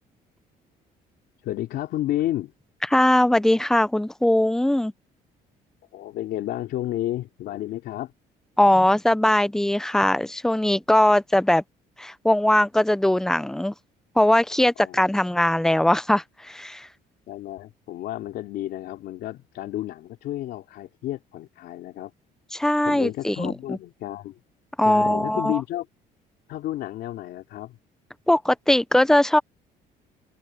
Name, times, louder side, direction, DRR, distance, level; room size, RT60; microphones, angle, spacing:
voice 1, 1.4-2.5 5.9-8.1 14.8-15.0 17.3-22.1 22.8-24.4 24.8-25.9 26.5-27.8, left 14 dB, 75° left, 3.1 m, -31 dB
voice 2, 2.9-4.9 8.6-11.6 12.0-13.7 14.2-16.9 22.5-23.5 24.8-25.6 28.3-29.4, left 1 dB, 5° left, 0.7 m, -20 dB
open air
cardioid pair, 110°, 17 cm